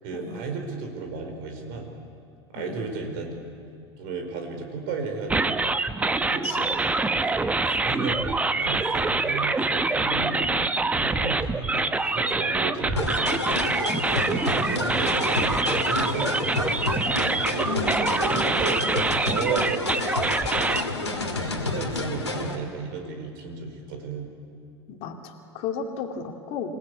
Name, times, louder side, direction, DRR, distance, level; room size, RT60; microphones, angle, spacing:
voice 1, 0.0-1.9 2.5-5.6 6.2-6.5 7.2-10.4 11.0-13.3 14.3-16.8 17.5-18.8 19.1-20.0 21.0-24.3, right 4 dB, 50° right, 4 dB, 4.7 m, -34 dB
sound 1, 5.3-20.8, right 3 dB, 10° right, 0.9 m, -25 dB
voice 2, 6.2-6.7 10.2-10.7 14.1-14.3 17.6-18.1 24.9-26.8, left 6 dB, 45° left, 3 dB, 2.5 m, -34 dB
sound 2, 13.0-22.6, left 3 dB, 80° left, 2.3 m, -29 dB
27.5 x 17.5 x 8.3 m, 2.3 s
figure-of-eight pair, 80°, 14 cm